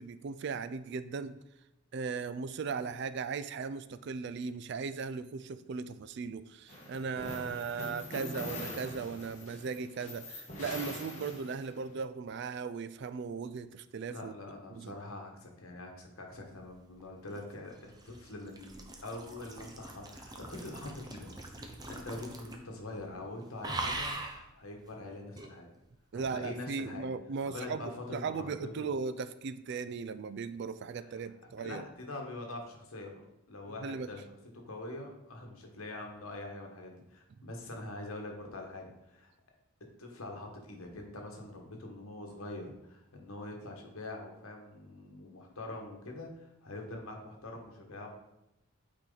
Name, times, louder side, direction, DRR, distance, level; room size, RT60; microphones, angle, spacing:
voice 1, 0.0-1.4 1.9-14.3 14.7-14.9 26.1-31.8 33.8-34.1, right 5 dB, 50° right, 14 dB, 0.3 m, -37 dB
sound 1, 6.7-11.9, left 1 dB, 30° left, 1.7 m, -43 dB
voice 2, 14.1-21.3 21.5-24.2 24.5-25.7 26.1-27.1 27.4-28.9 30.9-33.1 33.5-34.2 34.5-39.3 40.0-48.1, left 2 dB, 70° left, 1 dB, 1.4 m, -44 dB
sound 2, 17.0-22.7 23.0-23.3 23.6-24.4 25.4-25.5, right 2 dB, 20° right, 0.6 m, -41 dB
8.7 x 4.4 x 3.9 m, 0.89 s
head